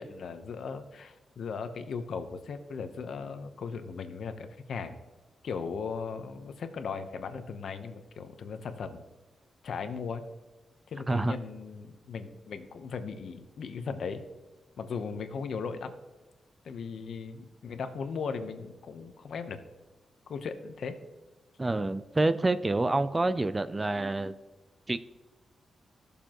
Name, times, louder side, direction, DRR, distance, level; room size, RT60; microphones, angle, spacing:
voice 1, 0.0-5.0 5.4-9.0 9.6-10.2 10.9-14.2 14.8-15.9 16.6-19.6 20.3-21.0, left 5 dB, 65° left, 8 dB, 0.8 m, -37 dB
voice 2, 21.6-24.4 24.9-25.0, right 2 dB, 20° right, 13 dB, 0.3 m, -27 dB
15.5 x 6.8 x 3.0 m, 1.2 s
wide cardioid pair, 150°, 0 cm